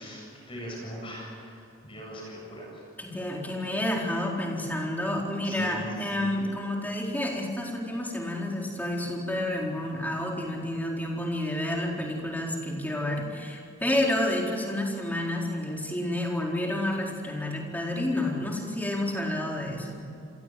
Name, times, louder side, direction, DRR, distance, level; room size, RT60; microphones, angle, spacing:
voice 1, 0.0-2.8 5.4-6.3, right 1 dB, 25° left, -2 dB, 7.9 m, -40 dB
voice 2, 3.0-20.0, left 1 dB, 10° left, -1 dB, 4.2 m, -30 dB
28.5 x 23.0 x 7.9 m, 2.8 s
head